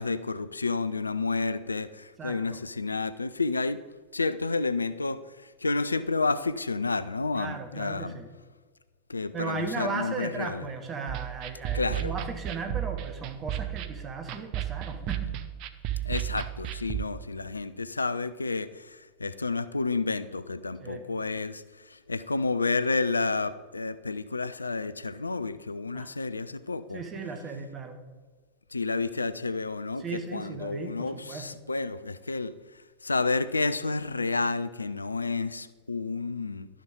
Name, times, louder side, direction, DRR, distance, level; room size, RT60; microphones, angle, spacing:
voice 1, 0.0-3.8 4.1-8.1 9.1-10.6 11.7-12.1 16.0-27.0 28.7-32.5 33.0-36.7, left 3 dB, 80° left, 14 dB, 0.4 m, -30 dB
voice 2, 2.2-2.6 7.3-8.3 9.3-15.3 20.8-21.0 25.9-26.1 26.9-28.0 30.0-31.5, right 4 dB, 25° right, 5 dB, 1.6 m, -36 dB
sound 1, 11.1-17.1, right 13 dB, 40° right, 0.7 m, -34 dB
12.0 x 6.4 x 5.2 m, 1.4 s
figure-of-eight pair, 90°, 0 cm